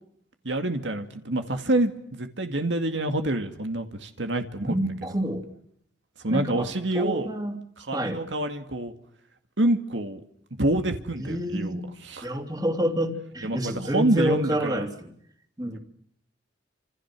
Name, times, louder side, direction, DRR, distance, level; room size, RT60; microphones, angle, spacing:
voice 1, 0.4-4.9 6.2-7.3 7.9-8.9 9.6-10.2 10.6-11.8 12.1-12.3 13.4-14.9 15.6-15.8, right 1 dB, 90° right, 6 dB, 2.2 m, -27 dB
voice 2, 4.6-5.5 6.3-6.7 6.9-7.6 7.9-8.2 11.2-11.8 12.2-15.1 15.6-15.8, equal, 20° right, 5 dB, 2.9 m, -28 dB
29.0 x 27.0 x 6.1 m, 0.67 s
head